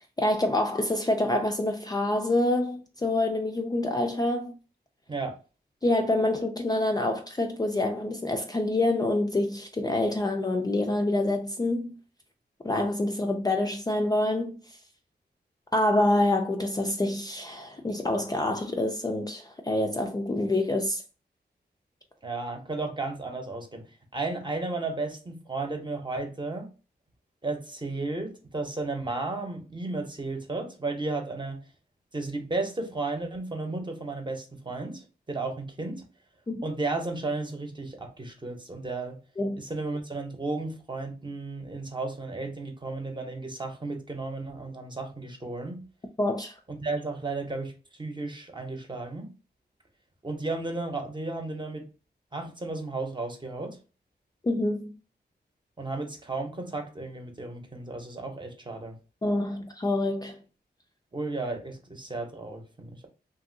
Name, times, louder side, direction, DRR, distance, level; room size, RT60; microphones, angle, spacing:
voice 1, 0.2-4.6 5.8-11.9 12.6-14.6 15.7-21.0 36.5-36.6 39.4-39.6 46.2-46.5 54.4-55.0 59.2-60.4, left 1 dB, 20° left, 0.4 m, -26 dB
voice 2, 22.2-23.8 24.1-26.7 27.4-31.6 32.1-36.0 36.6-39.2 39.6-45.8 46.7-47.7 48.0-49.3 50.2-51.9 52.3-53.8 55.8-59.0 61.1-63.1, right 3 dB, 25° right, 0.8 m, -34 dB
2.9 x 2.6 x 2.6 m
wide cardioid pair, 100°, 17 cm